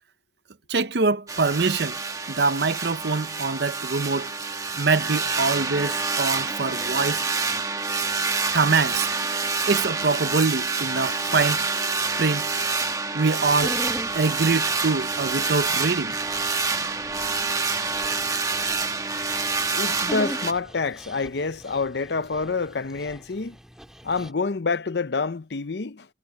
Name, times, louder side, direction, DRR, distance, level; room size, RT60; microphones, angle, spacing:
voice 1, 0.7-2.0 2.3-4.3 4.7-7.3 8.5-9.1 9.7-11.7 12.2-12.5 13.1-13.8 14.1-16.2, right 4 dB, 70° right, 0.7 m, -24 dB
sound 1, 1.3-20.5, right 4 dB, 20° right, 1.2 m, -27 dB
Dog, 13.5-24.3, equal, 5° right, 1.8 m, -41 dB
voice 2, 19.7-23.5 24.0-26.1, left 4 dB, 70° left, 0.7 m, -27 dB
head